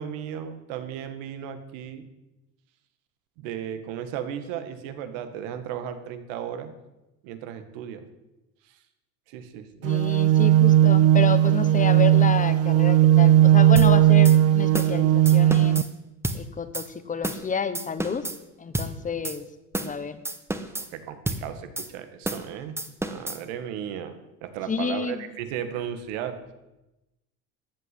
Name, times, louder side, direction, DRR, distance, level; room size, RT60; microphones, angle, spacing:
voice 1, 0.0-2.0 3.4-6.7 7.2-8.1 8.7-8.8 9.3-9.7 20.8-22.8 23.0-24.1 24.4-26.4, right 9 dB, 85° right, 9 dB, 1.9 m, -35 dB
voice 2, 9.8-15.9 16.3-18.3 18.6-19.5 19.7-20.2 24.7-25.3, left 5 dB, 20° left, 12 dB, 1.2 m, -30 dB
sound 1, 9.8-15.8, right 12 dB, 45° right, 0.5 m, -17 dB
sound 2, 13.8-13.9 14.2-14.4 14.7-15.0 15.3-15.9 16.2-16.4 16.7-16.9 17.2-17.5 17.7-18.4 18.7-18.9 19.2-19.4 19.7-20.0 20.2-20.9 21.3-21.4 21.8-21.9 22.2-22.5 22.8-23.4, right 2 dB, 5° right, 1.2 m, -30 dB
14.0 x 8.3 x 8.4 m, 0.97 s
cardioid pair, 120°, 36 cm